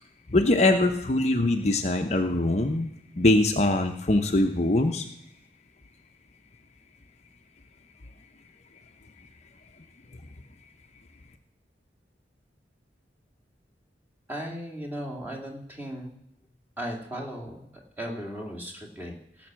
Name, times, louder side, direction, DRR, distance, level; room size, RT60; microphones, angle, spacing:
voice 1, 0.3-2.9 3.2-5.0, left 2 dB, 40° left, 4 dB, 0.8 m, -22 dB
voice 2, 14.3-16.1 16.8-17.7 18.0-19.5, equal, 10° right, -1 dB, 2.2 m, -36 dB
17.5 x 6.1 x 7.5 m, 0.78 s
head